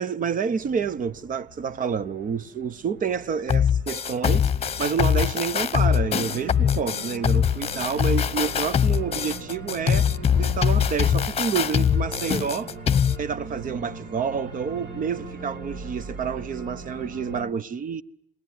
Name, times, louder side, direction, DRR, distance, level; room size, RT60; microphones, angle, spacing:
voice 1, 0.0-12.7 13.2-18.0, right 6 dB, 45° right, 1.1 m, -29 dB
Organ, 0.6-17.4, right 3 dB, 65° right, 5.1 m, -40 dB
sound 1, 3.5-13.2, left 8 dB, 30° left, 1.0 m, -22 dB
28.5 x 20.5 x 9.5 m
supercardioid pair, 80°, 19 cm